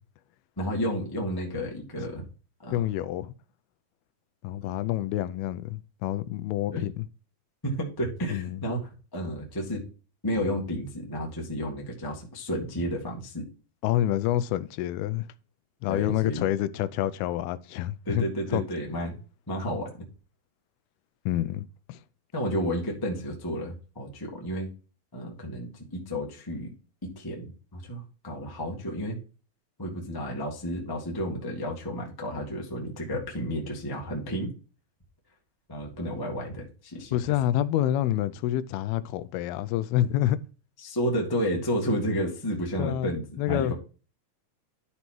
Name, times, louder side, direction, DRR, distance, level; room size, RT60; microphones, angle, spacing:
voice 1, 0.6-2.2 2.6-2.8 6.7-6.9 7.6-8.8 9.1-9.8 10.2-13.4 15.9-16.5 18.0-19.2 19.5-19.9 22.3-24.7 25.1-26.7 27.0-29.2 29.8-34.5 35.7-37.1 40.8-43.7, equal, 20° left, 0.6 m, -31 dB
voice 2, 2.7-3.3 4.4-7.1 8.3-8.6 13.8-15.3 15.8-18.2 18.5-18.6 21.3-22.0 37.1-40.4 42.8-43.7, left 13 dB, 85° left, 2.5 m, -28 dB
11.5 x 4.1 x 4.5 m
omnidirectional pair, 4.4 m